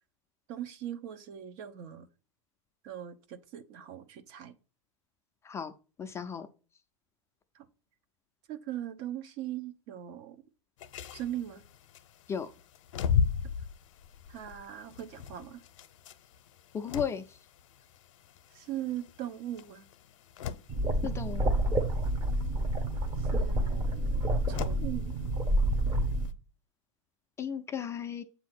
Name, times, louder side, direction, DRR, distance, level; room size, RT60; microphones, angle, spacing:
voice 1, 0.5-2.1 2.8-4.6 7.5-7.6 8.5-10.4 11.1-11.6 14.3-15.6 18.5-19.8 23.2-25.2, right 11 dB, 50° right, 0.8 m, -40 dB
voice 2, 6.0-6.5 12.3-12.5 16.7-17.2 21.0-21.5 27.4-28.2, left 7 dB, 15° left, 0.4 m, -34 dB
sound 1, 10.8-26.3, left 7 dB, 70° left, 0.7 m, -38 dB
sound 2, 20.7-26.3, right 1 dB, 25° right, 0.9 m, -28 dB
7.8 x 2.8 x 5.9 m
hypercardioid pair, 130°, 17 cm